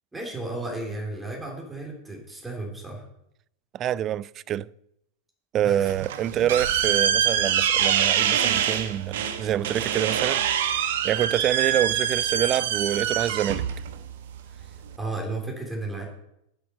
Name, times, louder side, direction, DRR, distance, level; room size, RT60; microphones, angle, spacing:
voice 1, 0.1-3.0 5.6-5.9 14.5-16.0, right 2 dB, 10° right, 3.2 m, -34 dB
voice 2, 3.7-4.7 5.5-10.4 11.0-13.7, right 11 dB, 30° right, 0.3 m, -26 dB
sound 1, 5.9-15.0, right 9 dB, 55° right, 1.0 m, -25 dB
8.7 x 8.1 x 6.4 m
figure-of-eight pair, 90°, 0 cm